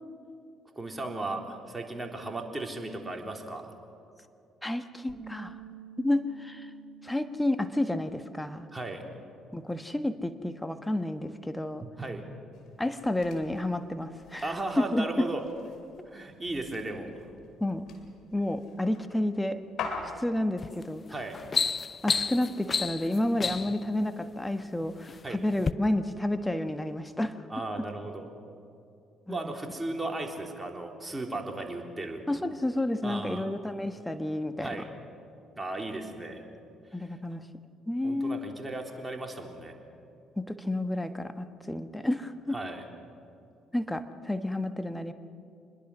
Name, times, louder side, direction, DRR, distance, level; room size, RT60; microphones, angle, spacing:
voice 1, 0.8-3.7 8.7-9.0 11.8-12.2 14.4-15.4 16.1-17.3 21.1-21.4 25.2-25.4 27.5-28.3 29.3-32.2 33.0-33.5 34.6-34.9 35.6-36.4 38.0-39.7 42.5-42.8, right 2 dB, 15° right, 2 dB, 3.7 m, -36 dB
voice 2, 4.6-5.5 6.0-6.7 7.0-8.7 9.5-11.9 12.8-15.3 17.6-17.9 18.3-19.6 20.0-21.0 22.0-27.4 29.3-29.5 32.3-34.8 36.9-37.4 37.9-38.4 40.4-42.6 43.7-45.1, left 1 dB, 10° left, 9 dB, 1.4 m, -30 dB
Bass guitar, 5.1-9.4 9.7-11.3, right 9 dB, 60° right, 3.7 m, -51 dB
sound 1, 12.5-20.5, left 5 dB, 60° left, 2.7 m, -44 dB
sound 2, 20.6-20.8 21.2-23.8 24.6-25.2 25.6-25.7, left 5 dB, 35° left, 0.6 m, -30 dB
26.5 x 21.5 x 6.3 m, 2.6 s
hypercardioid pair, 50°, 0 cm